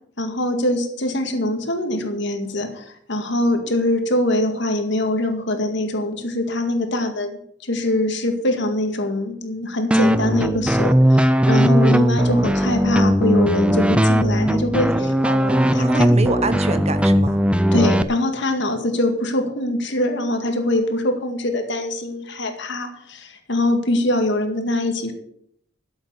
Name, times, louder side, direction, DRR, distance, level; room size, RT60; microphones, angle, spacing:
voice 1, 0.2-15.1 15.7-16.1 17.7-25.1, left 1 dB, 65° left, 5 dB, 2.1 m, -23 dB
sound 1, 9.9-18.0, equal, 5° right, 0.5 m, -18 dB
voice 2, 11.9-12.6 15.0-17.4, right 3 dB, 35° right, 11 dB, 1.1 m, -28 dB
12.5 x 8.0 x 7.1 m, 0.69 s
head